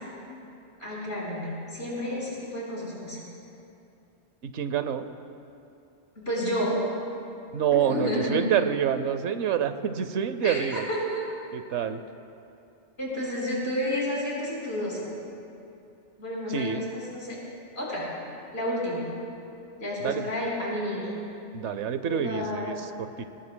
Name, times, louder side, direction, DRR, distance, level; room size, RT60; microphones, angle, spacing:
voice 1, 0.8-3.2 6.2-6.8 7.7-8.4 10.4-11.2 13.0-15.0 16.2-17.3 17.7-18.1 18.5-19.1 19.8-21.1 22.1-22.7, left 1 dB, 70° left, -6 dB, 4.5 m, -30 dB
voice 2, 4.4-5.1 7.5-10.8 11.5-12.0 16.5-16.9 20.0-20.3 21.5-23.3, right 8 dB, 75° right, 10 dB, 1.0 m, -27 dB
22.5 x 19.0 x 2.2 m, 2.7 s
omnidirectional pair, 1.2 m